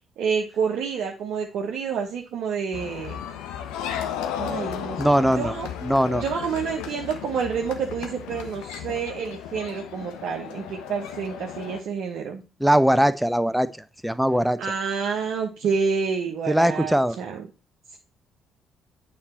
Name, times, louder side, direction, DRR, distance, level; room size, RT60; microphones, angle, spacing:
voice 1, 0.2-3.2 4.4-5.0 5.4-5.7 6.2-12.4 14.6-17.4, right 6 dB, 60° right, 2 dB, 1.1 m, -28 dB
sound 1, 2.7-11.8, left 9 dB, 70° left, 1.0 m, -34 dB
voice 2, 5.0-5.6 5.8-6.2 12.6-14.6 16.5-17.2, equal, 5° right, 13 dB, 0.8 m, -21 dB
8.8 x 4.4 x 4.3 m, 0.31 s
figure-of-eight pair, 45°, 0 cm